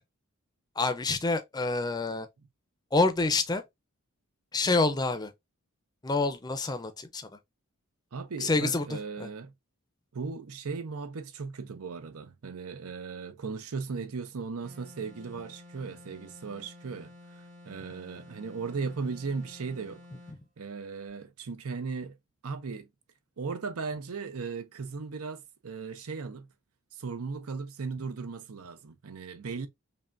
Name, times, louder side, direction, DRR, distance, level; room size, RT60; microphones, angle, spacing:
voice 1, 0.8-2.3 2.9-3.6 4.5-5.3 6.0-7.3 8.4-9.3, left 3 dB, 20° left, 0.5 m, -27 dB
voice 2, 8.1-9.5 10.1-20.1 20.6-22.2 22.4-22.9 23.4-26.5 26.9-29.7, right 4 dB, 80° right, 0.6 m, -37 dB
sound 1, 14.6-20.4, left 2 dB, 45° right, 1.7 m, -51 dB
5.4 x 2.2 x 2.5 m
head